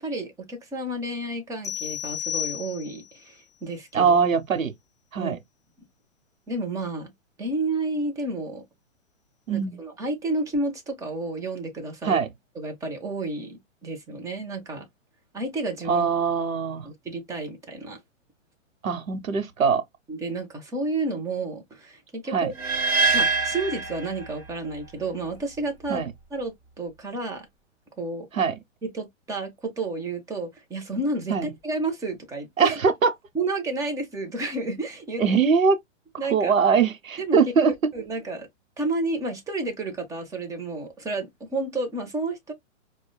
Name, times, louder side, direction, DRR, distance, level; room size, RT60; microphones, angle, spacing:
voice 1, 0.0-4.1 5.2-5.4 6.5-7.1 7.4-8.6 9.5-12.2 12.6-14.9 15.3-16.1 16.9-18.0 20.1-22.5 23.1-26.0 26.3-27.5 28.0-28.3 28.8-32.8 33.3-35.2 36.2-36.5 37.2-37.4 37.9-38.5 38.8-42.5, right 2 dB, 10° right, 0.6 m, -31 dB
sound 1, 1.6-3.2, left 11 dB, 10° left, 1.1 m, -32 dB
voice 2, 3.9-4.7 5.1-5.4 9.5-9.8 12.0-12.3 15.9-16.9 18.8-19.8 22.3-22.5 25.9-26.1 28.3-28.5 31.3-31.5 32.6-33.1 35.2-35.8 36.3-37.7, right 5 dB, 90° right, 0.9 m, -22 dB
sound 2, 22.6-24.7, right 4 dB, 30° right, 1.4 m, -24 dB
4.8 x 2.2 x 2.2 m
hypercardioid pair, 125°, 39 cm